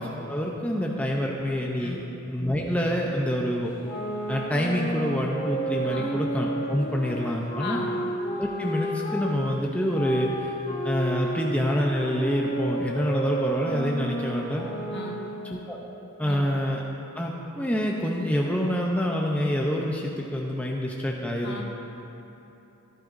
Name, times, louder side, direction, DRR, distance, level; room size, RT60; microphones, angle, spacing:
voice 1, 0.0-2.0 2.3-3.7 4.3-7.8 8.4-10.5 10.8-14.7 15.5-15.8 16.2-16.8 17.1-21.6, equal, 5° left, -2 dB, 0.6 m, -27 dB
sound 1, 3.7-9.3 9.9-15.5, right 1 dB, 35° left, 1.7 m, -31 dB
voice 2, 5.8-6.2 7.6-8.0 14.9-15.2 16.2-16.5 21.4-21.6, left 3 dB, 55° left, -1 dB, 1.3 m, -36 dB
14.5 x 10.5 x 2.6 m, 3.0 s
head